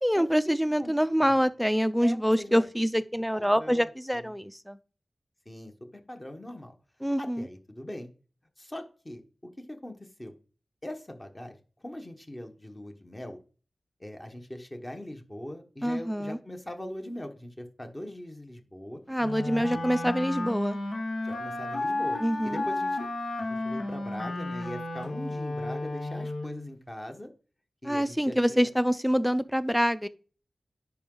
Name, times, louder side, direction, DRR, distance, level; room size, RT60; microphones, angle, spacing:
voice 1, 0.0-4.8 7.0-7.5 15.8-16.4 19.1-20.8 22.2-22.6 27.8-30.1, equal, ahead, 0.5 m, -26 dB
voice 2, 2.0-2.6 3.3-4.3 5.4-6.7 7.2-8.1 8.6-10.3 10.8-13.4 14.0-19.0 19.7-19.8 21.2-22.2 22.4-23.1 23.4-27.3 27.8-28.7, left 1 dB, 20° left, 1.2 m, -41 dB
Wind instrument woodwind instrument, 19.2-26.7, left 2 dB, 75° left, 1.5 m, -33 dB
10.5 x 4.8 x 3.8 m
wide cardioid pair, 95°, 0 cm